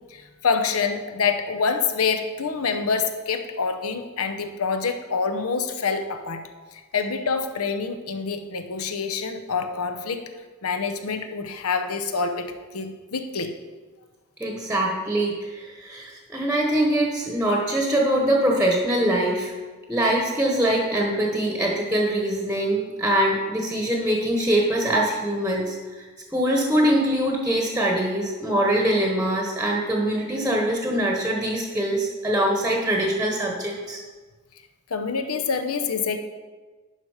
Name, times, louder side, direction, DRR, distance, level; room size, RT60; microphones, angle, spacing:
voice 1, 0.1-6.4 6.7-10.2 10.6-13.6 34.9-36.2, left 5 dB, 85° left, 7 dB, 0.8 m, -26 dB
voice 2, 14.4-19.5 19.9-26.1 26.3-34.0, right 1 dB, 5° right, -1 dB, 1.0 m, -23 dB
11.0 x 5.0 x 4.9 m, 1.3 s
head